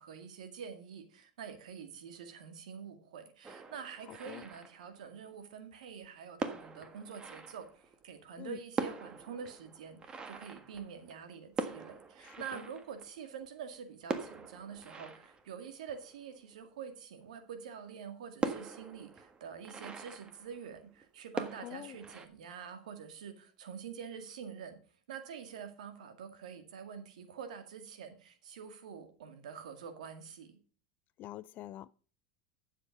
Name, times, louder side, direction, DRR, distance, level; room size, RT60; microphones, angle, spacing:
voice 1, 0.0-24.8 25.1-30.6, right 7 dB, 90° right, 2.0 m, -46 dB
sound 1, 3.4-5.3 6.0-6.1 6.4-8.1 8.4-8.5 8.7-13.5 14.0-16.7 17.2-17.3 17.7-17.8 18.4-21.0 21.3-22.3, right 4 dB, 25° right, 1.5 m, -42 dB
voice 2, 4.1-4.5 8.4-8.6 12.2-12.6 21.6-22.0 31.2-31.9, left 15 dB, 50° left, 0.5 m, -46 dB
11.0 x 7.5 x 5.3 m
supercardioid pair, 110°, 4 cm